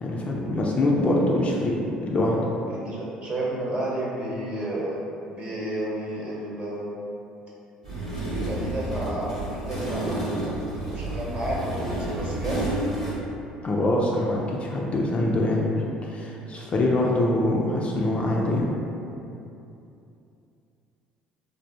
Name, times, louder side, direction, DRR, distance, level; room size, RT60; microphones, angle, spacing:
voice 1, 0.0-1.8 2.0-2.5 13.6-18.7, left 1 dB, 30° left, -3 dB, 0.4 m, -24 dB
voice 2, 2.7-6.9 8.3-10.2 10.9-12.6 17.0-17.2, right 1 dB, 35° right, -6 dB, 0.9 m, -31 dB
sound 1, 7.8-13.1, right 1 dB, 90° right, 0.7 m, -30 dB
3.3 x 2.0 x 2.7 m, 2.8 s
figure-of-eight pair, 55°, 4 cm